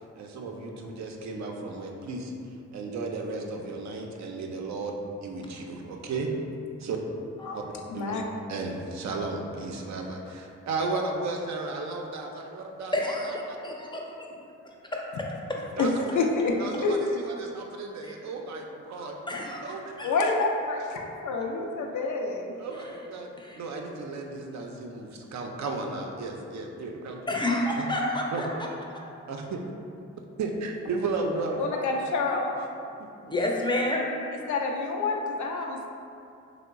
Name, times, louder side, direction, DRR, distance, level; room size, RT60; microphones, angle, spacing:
voice 1, 0.2-2.3 2.7-5.0 5.2-6.3 6.8-7.0 7.5-7.6 7.9-8.2 8.5-13.6 15.8-16.2 16.6-19.2 19.6-20.0 22.5-23.3 23.5-27.2 27.8-27.9 28.3-28.5 29.3-29.6 30.4-31.7, right 3 dB, 65° right, 2 dB, 0.5 m, -34 dB
voice 2, 7.9-8.2 15.8-16.6 16.8-17.0 20.0-22.5 31.6-32.6 34.5-35.9, left 3 dB, 75° left, 1 dB, 0.4 m, -28 dB
voice 3, 12.9-14.0 14.6-15.0 18.0-18.1 19.3-20.1 23.4-23.6 27.3-28.5 28.9-29.0 33.3-34.1, left 1 dB, 15° left, -1 dB, 0.5 m, -29 dB
2.9 x 2.0 x 3.5 m, 2.6 s
supercardioid pair, 50°, 30 cm